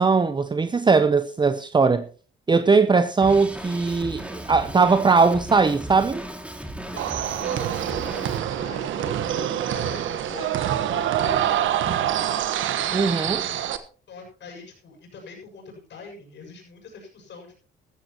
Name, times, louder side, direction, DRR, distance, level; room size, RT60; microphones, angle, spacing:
voice 1, 0.0-2.1 2.5-6.2 12.9-13.4, right 4 dB, 20° right, 0.7 m, -20 dB
Drum kit, 3.2-8.4, right 1 dB, 5° right, 2.4 m, -36 dB
sound 1, 7.0-13.8, right 10 dB, 75° right, 1.3 m, -26 dB
voice 2, 8.6-12.5 14.1-17.5, left 4 dB, 65° left, 7.2 m, -42 dB
15.0 x 14.0 x 3.0 m
cardioid pair, 90°, 20 cm